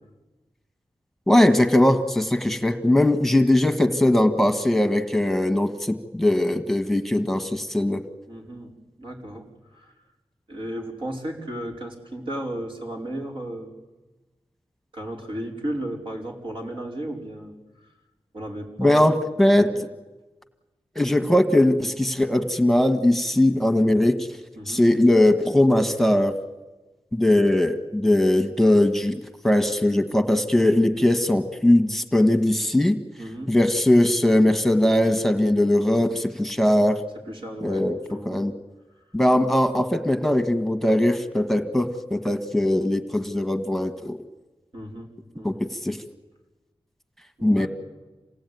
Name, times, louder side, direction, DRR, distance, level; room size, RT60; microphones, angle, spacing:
voice 1, 1.3-8.0 18.8-19.7 20.9-24.2 24.7-26.4 27.1-33.0 33.5-37.0 37.6-38.0 38.2-38.5 39.1-44.2 45.4-45.5 45.8-46.0 47.4-47.7, left 1 dB, ahead, 7 dB, 1.6 m, -20 dB
voice 2, 8.3-8.7 9.0-9.9 10.5-13.7 14.9-17.5 18.3-19.2 19.5-19.7 24.5-24.8 33.2-33.5 37.3-38.4 44.7-45.6 47.4-47.7, right 1 dB, 60° right, 0 dB, 5.1 m, -34 dB
27.5 x 18.0 x 9.5 m, 1.2 s
wide cardioid pair, 75°, 10 cm